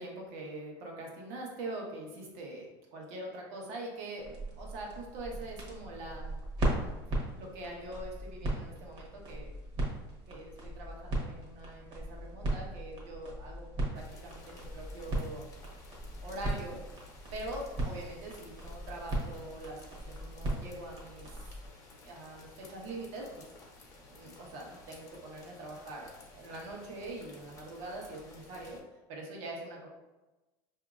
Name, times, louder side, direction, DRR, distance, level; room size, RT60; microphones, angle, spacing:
voice 1, 0.0-6.4 7.4-9.5 10.3-13.7 13.9-15.5 16.2-16.8 17.3-21.3 22.0-23.4 24.1-26.1 26.3-28.8 29.1-29.9, right 1 dB, 65° right, -1 dB, 1.1 m, -43 dB
sound 1, 4.2-21.7, right 1 dB, 40° right, 1.2 m, -38 dB
sound 2, 13.9-28.8, left 2 dB, 30° left, 0.9 m, -54 dB
4.9 x 2.7 x 2.4 m, 1.1 s
supercardioid pair, 130°, 12 cm